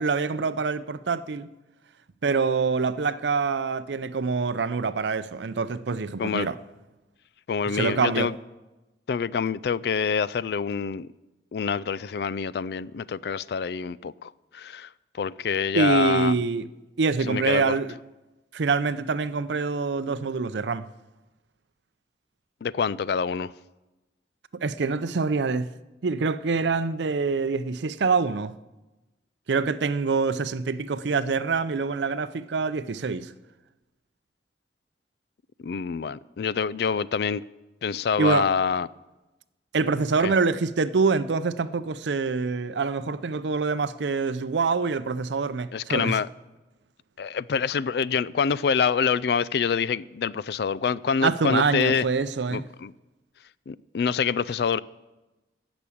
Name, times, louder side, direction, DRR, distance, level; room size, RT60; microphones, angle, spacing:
voice 1, 0.0-1.5 2.2-6.6 7.7-8.3 15.7-16.7 17.0-17.9 18.5-20.9 24.6-25.7 26.0-28.5 29.5-33.3 38.2-38.5 39.7-46.2 51.2-52.6, right 4 dB, 85° right, 0.5 m, -25 dB
voice 2, 7.5-8.3 9.1-11.1 11.5-14.9 15.2-16.4 17.3-17.7 22.6-23.5 35.6-37.4 37.8-38.9 40.2-40.3 45.7-46.3 47.2-52.1 52.5-52.9 53.7-54.8, left 6 dB, 65° left, 0.3 m, -26 dB
15.5 x 6.1 x 8.5 m
head